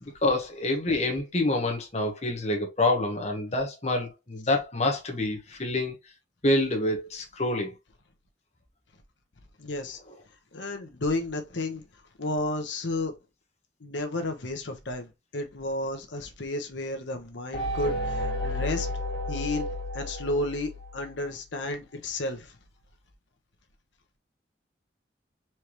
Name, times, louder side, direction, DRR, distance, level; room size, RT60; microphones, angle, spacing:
voice 1, 0.0-5.9 6.4-7.7, left 2 dB, 35° left, 1.1 m, -27 dB
voice 2, 9.6-10.0 10.5-11.8 12.2-13.1 13.8-18.9 19.3-19.7 19.9-22.5, left 2 dB, 85° left, 1.0 m, -32 dB
sound 1, 17.5-21.3, left 1 dB, 55° left, 2.0 m, -32 dB
4.4 x 3.3 x 3.0 m
head